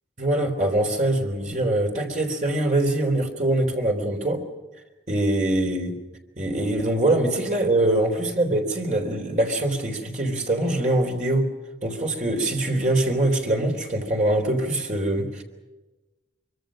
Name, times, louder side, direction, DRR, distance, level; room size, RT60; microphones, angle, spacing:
voice 1, 0.2-4.4 5.1-5.9 6.4-11.5 11.8-15.4, right 1 dB, 40° right, 2 dB, 3.7 m, -23 dB
24.5 x 24.5 x 6.4 m, 1.1 s
head